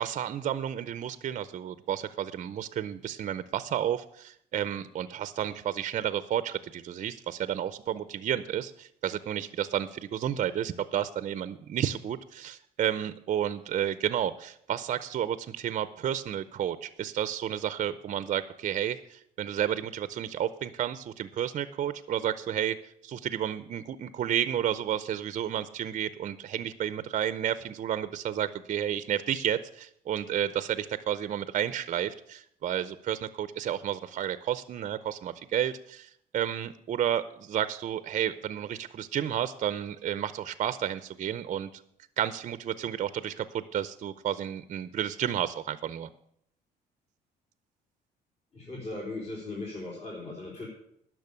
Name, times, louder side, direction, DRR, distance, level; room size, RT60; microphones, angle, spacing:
voice 1, 0.0-22.8 23.0-41.7 42.2-46.1, right 10 dB, 45° right, 14 dB, 0.6 m, -31 dB
voice 2, 48.5-50.7, left 2 dB, 40° left, -4 dB, 3.9 m, -38 dB
10.5 x 6.3 x 8.4 m, 0.70 s
cardioid pair, 110°, 17 cm